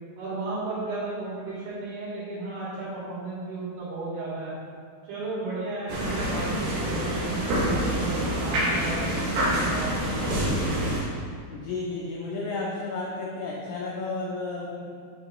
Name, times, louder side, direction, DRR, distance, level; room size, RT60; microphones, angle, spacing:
voice 1, 0.2-4.5 5.1-10.7, right 3 dB, 90° right, -9 dB, 4.5 m, -34 dB
sound 1, 5.9-11.0, right 1 dB, 60° right, 2.5 m, -26 dB
voice 2, 11.5-15.0, left 3 dB, 85° left, -4 dB, 2.0 m, -32 dB
8.6 x 6.7 x 3.1 m, 2.1 s
omnidirectional pair, 5.1 m